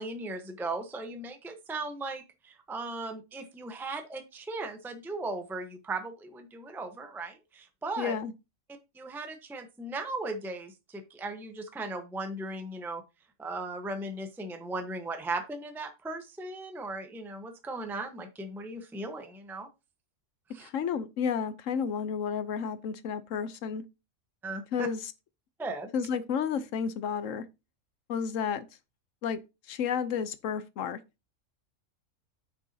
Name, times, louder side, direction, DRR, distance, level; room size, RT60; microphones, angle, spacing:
voice 1, 0.0-8.2 8.9-13.0 13.4-19.7 20.5-20.7 24.4-24.9 25.6-25.9, right 2 dB, ahead, 0.8 m, -37 dB
voice 2, 8.0-8.3 20.6-23.8 24.7-25.0 25.9-27.4 28.1-28.7 29.2-29.4 29.7-31.0, left 7 dB, 75° left, 1.1 m, -31 dB
9.1 x 6.1 x 2.8 m
omnidirectional pair, 1.4 m